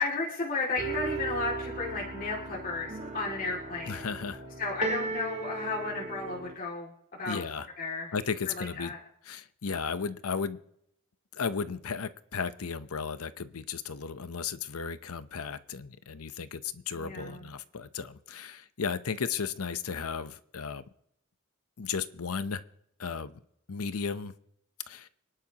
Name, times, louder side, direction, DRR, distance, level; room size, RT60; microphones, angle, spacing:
voice 1, 0.0-4.1 4.6-6.9 7.2-7.4 7.8-8.1 8.6-9.0 16.9-17.5, left 3 dB, 40° left, -3 dB, 2.4 m, -33 dB
sound 1, 0.8-6.5, right 4 dB, 30° right, 1.6 m, -37 dB
voice 2, 3.9-4.4 7.2-7.7 8.1-8.9 9.2-10.6 11.3-20.8 21.8-22.6 23.0-23.4 23.7-24.3 24.9-25.1, left 5 dB, 85° left, 13 dB, 0.8 m, -35 dB
26.0 x 11.5 x 2.9 m, 0.77 s
head